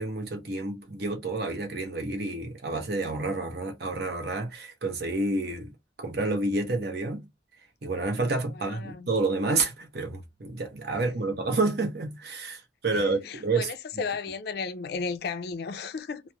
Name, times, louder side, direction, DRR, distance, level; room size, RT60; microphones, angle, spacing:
voice 1, 0.0-5.7 6.0-7.3 7.8-13.7, right 3 dB, 55° right, 0.7 m, -29 dB
voice 2, 8.6-9.1 12.9-16.2, left 5 dB, 55° left, 0.3 m, -34 dB
2.9 x 2.0 x 2.2 m
head